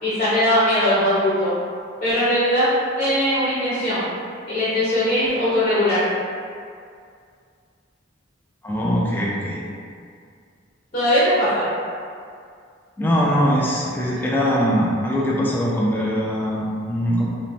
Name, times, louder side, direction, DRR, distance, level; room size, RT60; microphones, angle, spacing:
voice 1, 0.0-1.5 2.0-2.7 3.0-4.0 4.5-6.0 10.9-11.6, equal, 35° left, -12 dB, 0.7 m, -20 dB
voice 2, 8.6-9.6 13.0-17.3, equal, 10° left, -5 dB, 0.3 m, -21 dB
2.6 x 2.1 x 3.0 m, 2.2 s
head